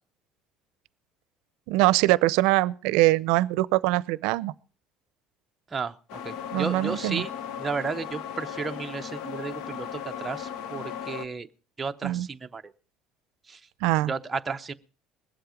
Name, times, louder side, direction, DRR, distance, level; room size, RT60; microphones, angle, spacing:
voice 1, 1.7-4.5 6.5-7.2 12.0-12.3 13.8-14.1, right 18 dB, 85° right, 0.5 m, -23 dB
voice 2, 5.7-7.3 7.6-11.5 11.8-12.7 13.5-13.6 14.1-14.7, right 4 dB, 20° right, 0.7 m, -33 dB
sound 1, 6.1-11.3, left 9 dB, 75° left, 0.9 m, -37 dB
20.5 x 7.8 x 5.0 m
cardioid pair, 135°, 0 cm